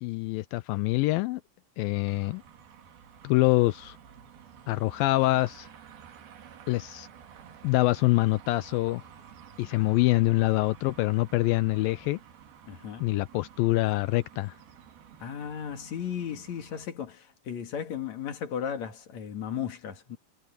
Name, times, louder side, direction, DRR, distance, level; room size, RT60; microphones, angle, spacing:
voice 1, 0.0-1.4 1.8-2.4 3.2-4.0 4.7-5.7 6.7-7.1 7.6-9.0 9.6-12.2 13.0-14.5, left 19 dB, 80° left, 2.2 m, -25 dB
sound 1, 2.0-16.9, right 8 dB, 75° right, 4.2 m, -51 dB
voice 2, 12.7-13.1 15.2-20.2, left 8 dB, 55° left, 2.9 m, -35 dB
omnidirectional pair, 4.4 m